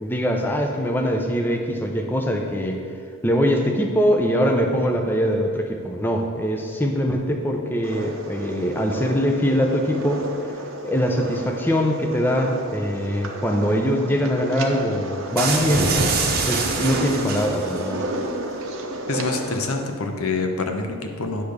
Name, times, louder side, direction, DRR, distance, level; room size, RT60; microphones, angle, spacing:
voice 1, 0.0-2.8 3.2-10.3 10.8-15.9 16.5-18.0, equal, 10° left, 2 dB, 0.5 m, -22 dB
sound 1, 7.8-19.8, right 1 dB, 70° right, 0.9 m, -32 dB
sound 2, 15.4-17.8, right 3 dB, 45° right, 0.9 m, -24 dB
voice 2, 19.1-21.4, left 3 dB, 90° left, 4 dB, 0.8 m, -26 dB
10.0 x 3.5 x 6.5 m, 2.2 s
head